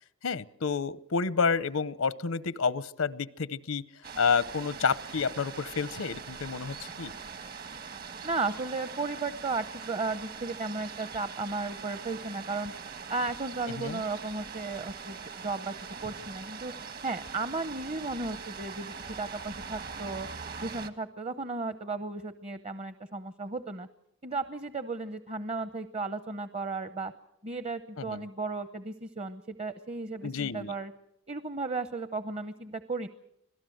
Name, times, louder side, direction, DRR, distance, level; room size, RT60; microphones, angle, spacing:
voice 1, 0.2-3.8 4.2-7.1 13.8-14.0 28.0-28.2 30.2-30.7, left 5 dB, 90° left, 17 dB, 0.8 m, -29 dB
sound 1, 4.0-20.9, right 5 dB, 50° right, 1.4 m, -42 dB
voice 2, 8.2-12.7 13.1-15.2 15.4-15.7 16.0-16.7 17.0-20.3 20.6-23.9 24.2-27.1 27.4-30.9 31.3-33.1, right 3 dB, 30° right, 12 dB, 0.8 m, -34 dB
26.0 x 17.5 x 7.9 m, 0.77 s
head